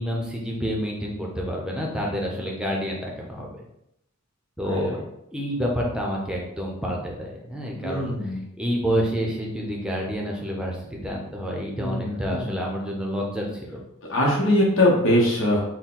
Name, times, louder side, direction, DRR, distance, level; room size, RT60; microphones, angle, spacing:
voice 1, 0.0-3.5 4.6-5.0 5.3-8.3 8.6-13.8, equal, 5° right, -2 dB, 0.7 m, -28 dB
voice 2, 4.6-4.9 7.8-8.4 11.8-12.6 14.1-15.6, left 1 dB, 70° left, -3 dB, 1.0 m, -22 dB
4.5 x 2.2 x 3.8 m, 0.80 s
head